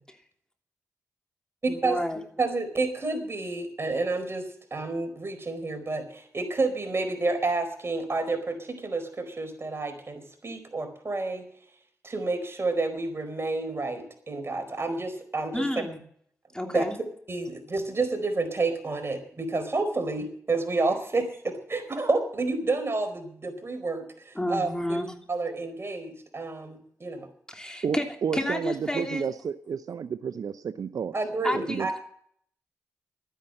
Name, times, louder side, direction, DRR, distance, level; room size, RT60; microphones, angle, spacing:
voice 1, 1.7-2.2 15.5-16.0 16.5-16.9 24.3-25.1 27.5-28.1 28.3-29.3 31.4-32.0, left 1 dB, 10° left, 3 dB, 3.0 m, -30 dB
voice 2, 2.4-11.4 12.0-15.6 16.7-16.8 17.3-25.0 25.3-27.3 31.1-32.0, right 3 dB, 40° right, 7 dB, 4.5 m, -30 dB
voice 3, 27.8-31.1 31.5-32.0, right 7 dB, 70° right, 11 dB, 0.6 m, -31 dB
12.5 x 10.0 x 7.7 m, 0.62 s
supercardioid pair, 40°, 6 cm